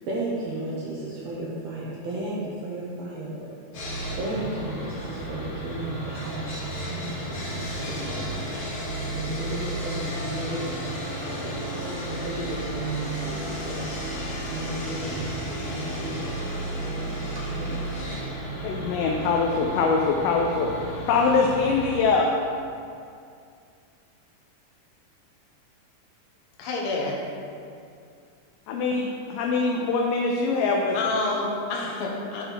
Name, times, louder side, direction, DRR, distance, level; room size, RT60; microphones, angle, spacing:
voice 1, 0.1-3.5 4.2-8.4 9.1-14.0 14.5-17.2 17.5-17.8, right 2 dB, 70° right, -5 dB, 1.7 m, -34 dB
Sawing, 3.7-22.0, right 1 dB, 45° left, 1.2 m, -33 dB
voice 2, 18.6-22.3 28.7-31.0, left 4 dB, 80° left, 0 dB, 2.1 m, -23 dB
voice 3, 26.6-27.2 30.9-32.4, left 3 dB, 65° left, -2 dB, 1.5 m, -28 dB
9.8 x 4.3 x 3.9 m, 2.4 s
omnidirectional pair, 3.8 m